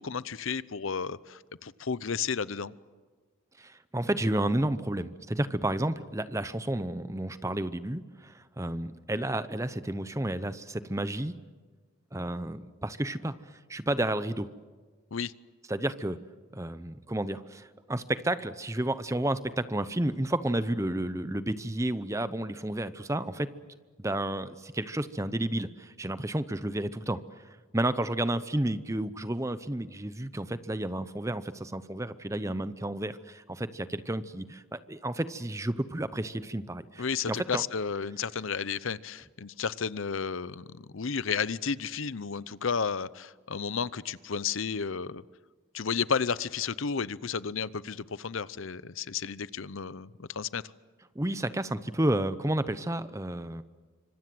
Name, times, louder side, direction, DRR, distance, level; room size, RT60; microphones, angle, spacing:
voice 1, 0.0-2.7 15.1-15.3 37.0-45.2 45.7-50.6, left 6 dB, 75° left, 18 dB, 0.7 m, -32 dB
voice 2, 3.6-11.3 12.1-13.3 13.7-14.5 15.7-16.2 16.5-23.5 24.0-27.2 27.7-37.6 51.1-53.6, right 1 dB, 15° right, 13 dB, 0.7 m, -31 dB
27.0 x 25.5 x 7.8 m, 1.4 s
head